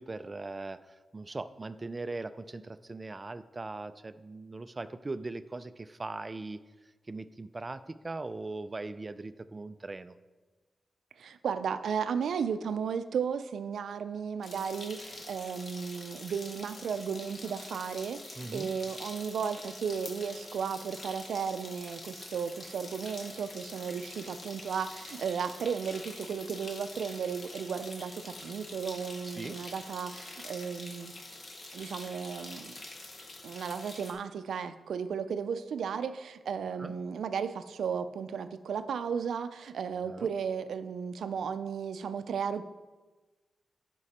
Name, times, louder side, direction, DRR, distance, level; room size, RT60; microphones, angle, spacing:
voice 1, 0.0-6.6 7.1-10.2 18.4-18.7 29.2-29.6 36.8-36.9 40.1-40.3, right 3 dB, 30° right, 13 dB, 0.4 m, -40 dB
voice 2, 11.2-31.2 31.7-32.7 33.4-42.6, right 6 dB, 90° right, 11 dB, 0.4 m, -34 dB
sound 1, 14.4-34.1, left 2 dB, 45° left, 1.6 m, -46 dB
11.0 x 5.3 x 4.2 m, 1.2 s
wide cardioid pair, 95°, 0 cm